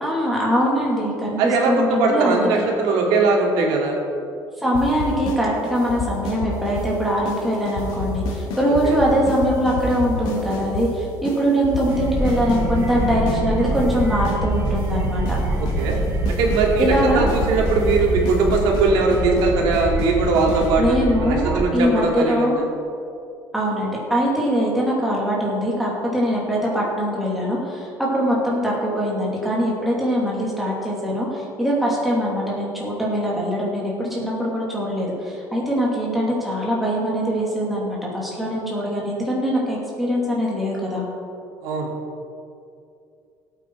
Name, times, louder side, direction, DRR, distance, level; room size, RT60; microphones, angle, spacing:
voice 1, 0.0-2.5 4.6-15.2 16.8-17.3 20.8-22.6 23.5-41.0, equal, ahead, -5 dB, 2.4 m, -22 dB
voice 2, 1.4-3.9 8.8-9.0 15.6-16.0 16.3-21.0 21.2-22.6 41.6-41.9, right 3 dB, 75° right, -1 dB, 2.6 m, -20 dB
sound 1, 4.7-5.4 5.6-6.9 7.2-7.4 7.7-10.9 11.2-11.4 11.6-13.4 13.6-14.9 15.2-15.4 15.7-20.7, left 3 dB, 65° left, 2.9 m, -29 dB
sound 2, 11.9-21.6, right 2 dB, 30° right, 1.6 m, -25 dB
19.0 x 8.5 x 4.6 m, 2.5 s
cardioid pair, 175°, 8 cm